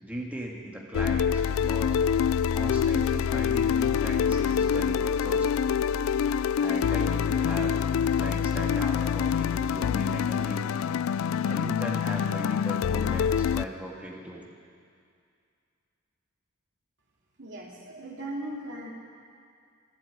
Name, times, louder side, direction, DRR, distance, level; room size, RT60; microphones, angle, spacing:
voice 1, 0.0-2.0 2.5-5.7 6.6-7.7 8.2-10.7 11.4-14.5, right 1 dB, 5° right, -2 dB, 1.9 m, -38 dB
sound 1, 0.9-13.7, left 7 dB, 70° left, 0.3 m, -26 dB
voice 2, 17.4-18.9, right 1 dB, 60° right, -2 dB, 2.7 m, -38 dB
12.0 x 11.5 x 9.2 m, 2.3 s
head